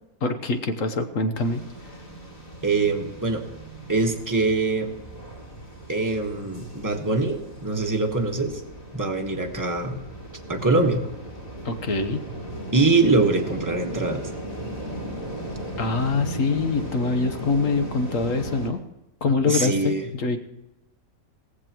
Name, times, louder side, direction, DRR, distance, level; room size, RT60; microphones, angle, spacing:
voice 1, 0.2-1.9 11.6-12.2 15.8-18.8 19.2-20.4, left 3 dB, 50° left, 7 dB, 1.3 m, -24 dB
sound 1, 1.4-18.7, right 1 dB, 20° left, 2.6 m, -37 dB
voice 2, 2.6-3.4 3.9-4.9 5.9-8.6 8.9-10.0 10.5-11.0 12.7-14.2 19.5-20.1, right 3 dB, 10° right, 3 dB, 1.2 m, -23 dB
17.5 x 15.0 x 3.0 m, 0.94 s
omnidirectional pair, 1.9 m